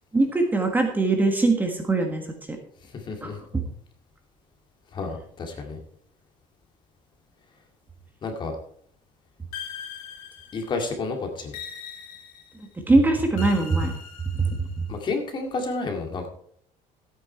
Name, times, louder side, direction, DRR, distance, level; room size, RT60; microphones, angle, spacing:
voice 1, 0.1-2.3 3.2-3.7 12.9-13.9 14.3-14.8, right 3 dB, 10° right, 3 dB, 1.5 m, -22 dB
voice 2, 2.8-3.4 4.9-5.8 8.2-8.6 10.5-11.6 14.9-16.3, left 3 dB, 30° left, 4 dB, 2.2 m, -30 dB
sound 1, 9.5-10.9 11.5-12.7 13.4-14.9, left 7 dB, 75° left, 2.4 m, -40 dB
14.0 x 8.9 x 4.5 m, 0.63 s
cardioid pair, 155°, 15 cm